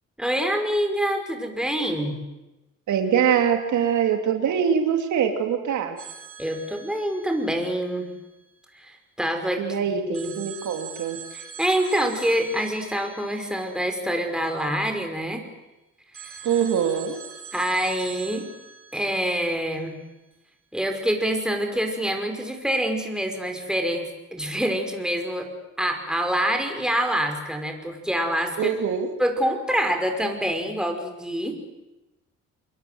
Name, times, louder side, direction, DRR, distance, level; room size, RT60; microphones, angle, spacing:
voice 1, 0.2-2.2 6.4-8.1 8.7-10.3 11.3-15.4 16.2-16.4 17.5-18.5 18.9-19.9 20.7-25.5 25.8-28.7 29.2-31.6, equal, ahead, 4 dB, 5.4 m, -26 dB
voice 2, 2.9-6.0 9.6-11.2 16.4-17.2 28.6-29.1, right 8 dB, 75° right, 5 dB, 2.7 m, -23 dB
sound 1, 6.0-8.9 10.1-15.1 16.1-20.3, right 7 dB, 45° right, 7.4 m, -44 dB
28.5 x 22.5 x 7.8 m, 1.0 s
cardioid pair, 90°, 30 cm